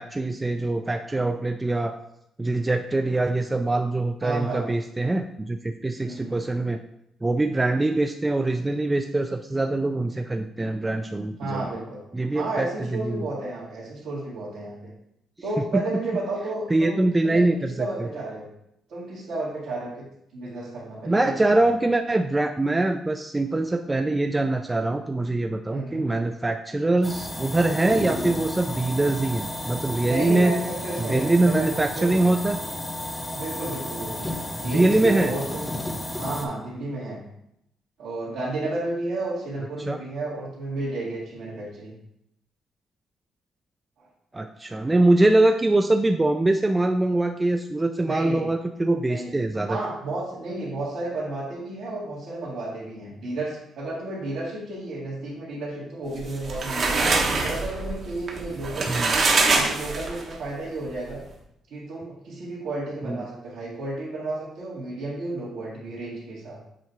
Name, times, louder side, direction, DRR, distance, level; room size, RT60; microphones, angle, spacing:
voice 1, 0.0-1.9 2.4-6.8 7.2-11.7 12.1-13.2 15.7-15.8 16.7-17.9 21.1-30.5 31.0-32.6 34.6-35.3 39.9-40.0 44.3-49.8 58.9-59.1 63.0-63.2, right 2 dB, 15° right, 5 dB, 0.4 m, -23 dB
voice 2, 4.2-4.6 6.0-6.4 11.4-12.0 12.3-14.9 15.4-17.5 17.8-18.5 18.9-20.1 20.3-21.5 25.7-26.0 30.0-32.3 33.3-35.8 36.2-37.2 38.0-41.9 48.0-48.4 49.1-49.3 49.7-57.1 57.4-61.2 61.7-66.6, right 2 dB, 80° right, -9 dB, 2.1 m, -32 dB
sound 1, 27.0-36.5, left 1 dB, 15° left, 0.8 m, -33 dB
sound 2, 56.2-60.4, right 3 dB, 50° right, 1.1 m, -24 dB
7.4 x 2.8 x 4.5 m, 0.79 s
cardioid pair, 90°, 0 cm